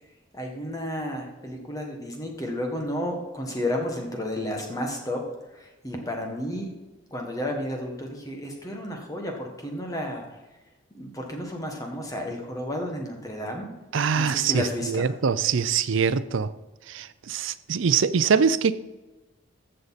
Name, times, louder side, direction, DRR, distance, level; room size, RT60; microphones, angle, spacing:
voice 1, 0.3-6.7 7.1-10.4 10.9-13.7 14.1-15.1, left 1 dB, 15° left, 1 dB, 1.5 m, -32 dB
voice 2, 13.9-16.5 16.9-18.8, right 6 dB, 75° right, 15 dB, 0.5 m, -23 dB
15.0 x 6.6 x 4.1 m, 1.2 s
head